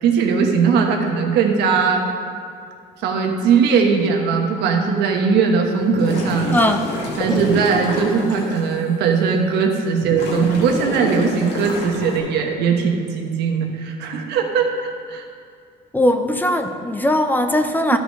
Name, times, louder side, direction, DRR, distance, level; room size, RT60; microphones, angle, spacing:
voice 1, 0.0-2.0 3.0-6.5 7.2-15.2 17.9-18.0, right 5 dB, 80° right, 2 dB, 1.2 m, -19 dB
sound 1, 5.8-8.6 9.2-9.3 10.0-12.2, left 1 dB, 80° left, 2.1 m, -27 dB
voice 2, 6.5-6.9 15.9-18.0, left 1 dB, 10° left, 6 dB, 0.6 m, -19 dB
13.0 x 4.9 x 5.3 m, 2.3 s
cardioid pair, 110°, 17 cm